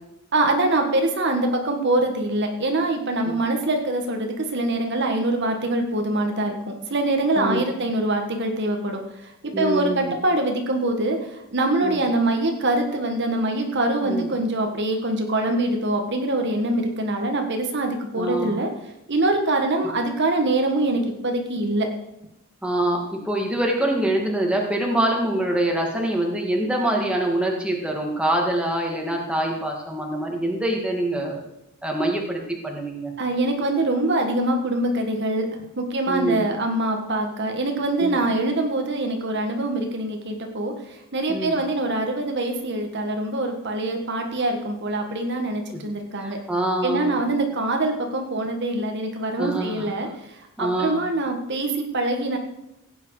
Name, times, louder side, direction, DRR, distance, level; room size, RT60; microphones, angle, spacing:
voice 1, 0.3-9.0 9.4-18.7 19.1-21.9 33.2-35.5 35.8-40.7 41.1-46.4 46.8-50.1 50.6-52.4, right 2 dB, 55° right, 4 dB, 1.5 m, -24 dB
voice 2, 9.5-10.1 11.8-12.0 14.0-14.3 18.2-18.6 22.6-31.4 31.8-33.1 36.1-36.4 38.0-38.2 41.3-41.5 45.7-45.8 46.1-47.2 49.4-49.9 50.6-51.0, right 1 dB, 5° right, 0 dB, 2.0 m, -25 dB
16.5 x 8.9 x 4.8 m, 0.86 s
head